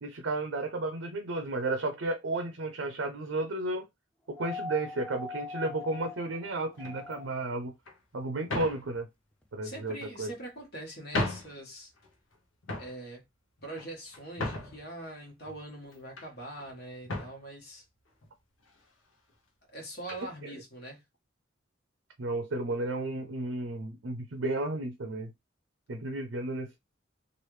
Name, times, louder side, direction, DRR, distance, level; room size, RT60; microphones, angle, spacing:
voice 1, 0.0-3.8 4.3-7.7 8.1-9.1 9.5-10.3 20.4-20.6 22.2-25.3 25.9-26.8, right 2 dB, 70° right, 0.5 m, -33 dB
sound 1, 4.3-7.6 9.0-9.1, left 2 dB, 5° left, 0.4 m, -41 dB
sound 2, 6.8-7.1 7.9-8.0 8.5-8.9 9.8-10.4 10.9-11.0 11.1-11.6 12.0-12.3 12.6-13.0 13.6-14.9 15.4-16.3 16.6-16.8 17.0-17.4 18.2-18.3 18.6-18.8 20.1-20.3, left 2 dB, 80° left, 0.8 m, -36 dB
voice 2, 9.6-11.9 12.8-13.2 13.6-17.8 19.7-21.0, right 1 dB, 55° left, 1.4 m, -43 dB
3.1 x 2.5 x 3.1 m
head